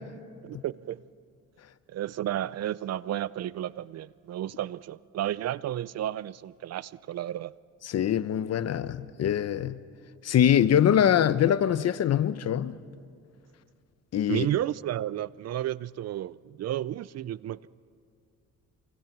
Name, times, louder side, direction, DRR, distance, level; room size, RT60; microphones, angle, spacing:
voice 1, 0.4-1.0 1.9-7.5 14.3-17.7, right 12 dB, 60° right, 0.5 m, -32 dB
voice 2, 7.8-9.8 10.2-12.8 14.1-14.5, left 10 dB, 55° left, 0.8 m, -23 dB
27.0 x 25.0 x 6.0 m
cardioid pair, 90°, 30 cm